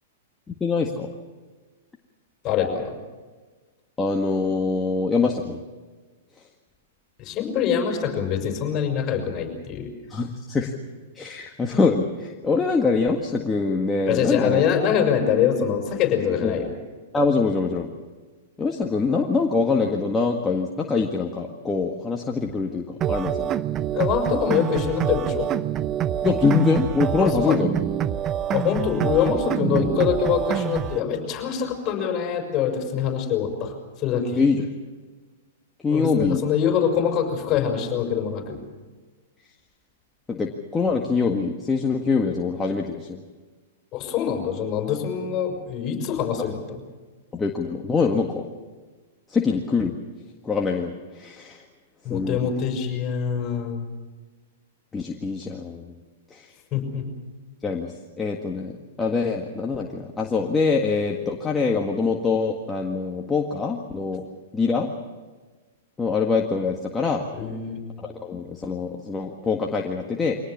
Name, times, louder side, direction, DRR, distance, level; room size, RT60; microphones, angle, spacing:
voice 1, 0.6-1.1 4.0-5.6 10.1-10.7 11.2-14.6 16.4-16.5 17.1-17.9 18.6-23.5 26.2-27.7 34.4-34.6 35.8-36.4 40.3-43.2 46.4-46.5 47.3-48.5 49.3-49.9 50.4-51.6 52.1-52.4 54.9-55.9 56.3-56.5 57.6-64.2 64.5-64.9 66.0-67.3 68.0-70.4, left 4 dB, 15° left, 1 dB, 1.8 m, -24 dB
voice 2, 2.4-3.0 7.2-9.9 14.1-16.7 23.9-25.5 27.2-27.7 28.5-34.4 35.9-38.6 43.9-46.8 52.0-53.8 56.7-57.1 67.3-67.8, left 8 dB, 35° left, 3 dB, 6.3 m, -24 dB
sound 1, 23.0-31.0, right 10 dB, 30° right, 0.7 m, -26 dB
24.0 x 18.5 x 7.3 m, 1.3 s
hypercardioid pair, 115°, 0 cm